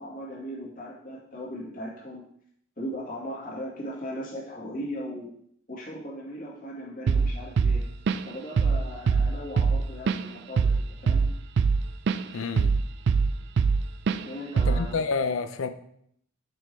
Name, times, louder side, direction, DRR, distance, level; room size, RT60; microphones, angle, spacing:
voice 1, 0.0-2.2 2.8-5.3 5.7-7.8 8.3-11.3 14.2-15.0, equal, 40° left, 2.0 m, -38 dB
Drum kit / Drum, 7.1-7.3 7.6-8.3 8.6-8.8 9.1-12.2 12.6-13.8 14.1-14.2 14.6-14.9, right 5 dB, 55° right, 0.3 m, -22 dB
voice 2, 12.3-12.8 14.7-15.7, left 4 dB, 70° left, 0.5 m, -29 dB
6.3 x 4.7 x 4.5 m
head